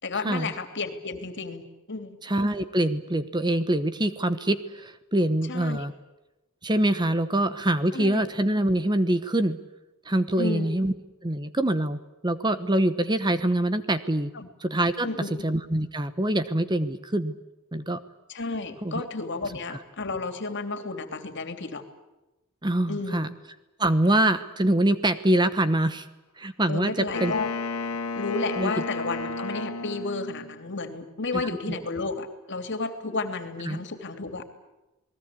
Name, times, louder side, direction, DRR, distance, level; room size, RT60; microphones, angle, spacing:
voice 1, 0.0-2.2 5.5-5.9 7.9-8.3 10.4-10.7 14.3-14.5 15.0-15.4 18.3-21.8 22.9-23.3 26.7-27.5 28.1-34.4, left 3 dB, 55° left, 8 dB, 2.9 m, -32 dB
voice 2, 2.2-5.9 6.6-9.6 10.1-10.9 11.2-14.3 14.6-15.1 15.4-17.3 17.7-18.0 18.8-19.0 19.7-19.8 22.6-23.3 23.8-26.1 26.4-26.9 27.2-27.3 28.6-28.7 31.3-31.8 33.7-33.8, right 1 dB, 20° right, 11 dB, 1.0 m, -25 dB
Wind instrument woodwind instrument, 27.1-30.6, left 3 dB, 80° left, 2.2 m, -32 dB
29.0 x 20.0 x 8.5 m, 1.0 s
head